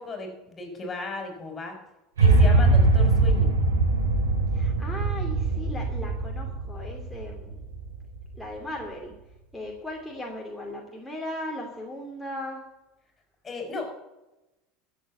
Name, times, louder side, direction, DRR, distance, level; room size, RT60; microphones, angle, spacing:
voice 1, 0.0-1.8 2.2-3.5 13.4-13.9, left 3 dB, 25° left, 4 dB, 4.7 m, -35 dB
sound 1, 2.2-8.4, right 3 dB, 90° right, 3.5 m, -22 dB
voice 2, 4.5-7.6 8.4-9.1 9.5-12.6, left 1 dB, ahead, -2 dB, 2.6 m, -37 dB
14.0 x 7.2 x 8.5 m, 1.0 s
hypercardioid pair, 85°, 0 cm